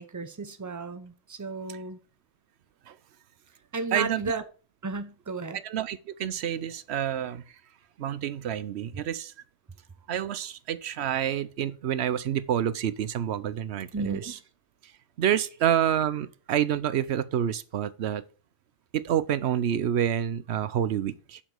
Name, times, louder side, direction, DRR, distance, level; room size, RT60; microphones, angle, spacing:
voice 1, 0.0-2.0 3.7-4.4 4.8-5.6 13.9-14.4, right 3 dB, 20° right, 0.7 m, -33 dB
voice 2, 3.9-4.4 5.6-7.4 8.0-9.3 10.1-14.3 14.8-14.9 15.2-18.2 18.9-21.4, right 10 dB, 75° right, 0.9 m, -28 dB
7.3 x 5.1 x 6.3 m
omnidirectional pair, 1.1 m